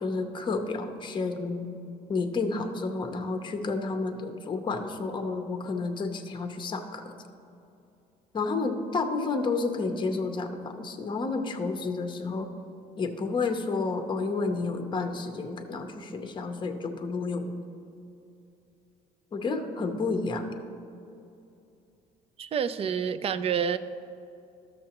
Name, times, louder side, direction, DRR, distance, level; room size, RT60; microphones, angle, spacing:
voice 1, 0.0-1.7 2.1-7.1 8.3-12.5 13.0-17.5 19.3-20.5, left 3 dB, 30° left, 6 dB, 0.7 m, -30 dB
voice 2, 22.4-23.8, right 7 dB, 35° right, 12 dB, 0.4 m, -28 dB
13.0 x 6.5 x 2.9 m, 2.7 s
cardioid pair, 110°, 17 cm